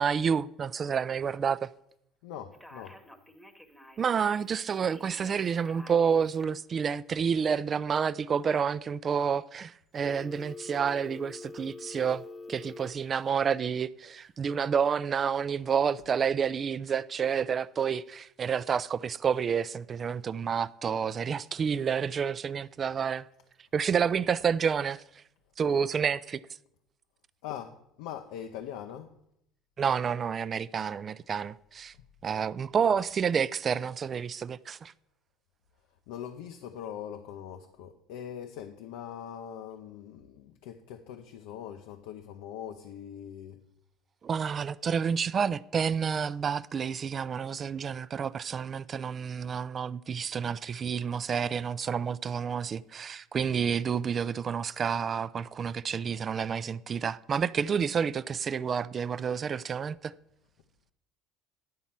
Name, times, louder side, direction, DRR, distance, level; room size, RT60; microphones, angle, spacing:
voice 1, 0.0-1.7 4.0-12.2 12.5-23.3 23.7-25.0 25.6-26.4 29.8-31.9 32.2-34.9 44.2-60.1, right 7 dB, 40° right, 0.4 m, -29 dB
voice 2, 2.2-3.0 27.4-29.2 32.0-32.1 36.1-43.6, left 9 dB, 80° left, 0.6 m, -42 dB
Telephone, 2.5-4.2 4.8-6.4 10.0-12.9, left 2 dB, 5° left, 1.1 m, -46 dB
10.5 x 4.1 x 7.3 m
supercardioid pair, 85°, 0 cm